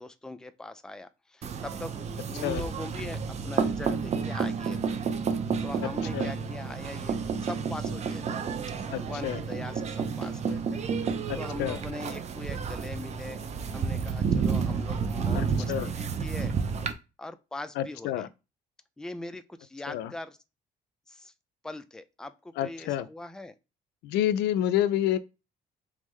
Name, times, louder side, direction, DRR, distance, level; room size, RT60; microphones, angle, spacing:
voice 1, 0.0-8.2 8.9-13.4 13.7-16.5 17.2-18.3 19.0-20.4 21.1-21.3 21.6-23.5, left 2 dB, 5° left, 0.4 m, -41 dB
sound 1, 1.4-16.9, right 6 dB, 40° right, 0.6 m, -31 dB
voice 2, 5.8-6.3 8.9-9.4 11.3-11.8 15.3-15.9 17.8-18.3 19.9-20.1 22.6-23.1 24.0-25.2, left 11 dB, 85° left, 0.4 m, -29 dB
3.7 x 3.6 x 3.1 m
cardioid pair, 110°, 17 cm